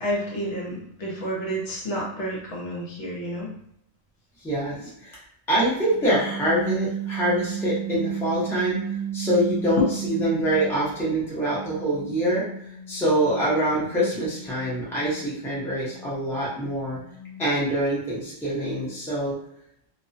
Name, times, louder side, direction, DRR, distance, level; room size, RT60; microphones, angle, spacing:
voice 1, 0.0-3.5, right 1 dB, 70° left, -3 dB, 1.0 m, -30 dB
voice 2, 4.4-5.2 5.5-12.4 12.9-17.0 17.4-19.3, right 1 dB, 5° left, -8 dB, 0.6 m, -25 dB
sound 1, 5.9-11.1 11.5-17.7, right 7 dB, 60° right, 0.4 m, -35 dB
2.3 x 2.1 x 2.5 m, 0.72 s
omnidirectional pair, 1.3 m